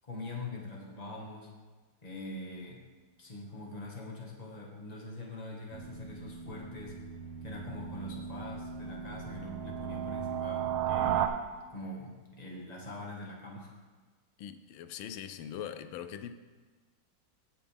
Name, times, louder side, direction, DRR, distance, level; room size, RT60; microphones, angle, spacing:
voice 1, 0.0-1.5 2.0-2.8 3.2-7.0 7.4-11.3 11.7-13.7, left 1 dB, 20° left, -2 dB, 1.6 m, -43 dB
sound 1, 5.7-11.3, right 9 dB, 80° right, 1.4 m, -35 dB
voice 2, 14.4-16.3, left 9 dB, 75° left, 11 dB, 1.3 m, -41 dB
17.5 x 6.1 x 3.5 m, 1.4 s
omnidirectional pair, 2.3 m